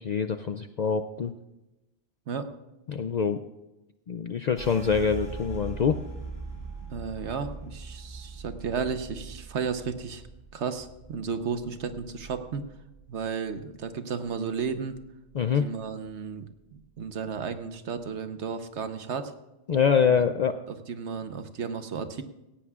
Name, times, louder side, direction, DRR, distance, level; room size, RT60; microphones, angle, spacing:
voice 1, 0.0-1.3 2.9-3.4 4.1-6.0 15.3-15.7 19.7-20.6, left 6 dB, 55° left, 8 dB, 0.5 m, -25 dB
sound 1, 4.5-14.0 14.2-15.5 15.8-16.3 16.7-17.3, right 3 dB, 15° left, 5.7 m, -42 dB
voice 2, 6.8-10.2 10.5-12.7 13.1-15.0 15.6-16.4 16.7-19.3 20.0-20.2 20.7-22.2, right 6 dB, 85° right, 9 dB, 1.2 m, -33 dB
17.5 x 16.5 x 2.4 m, 0.99 s
omnidirectional pair, 1.1 m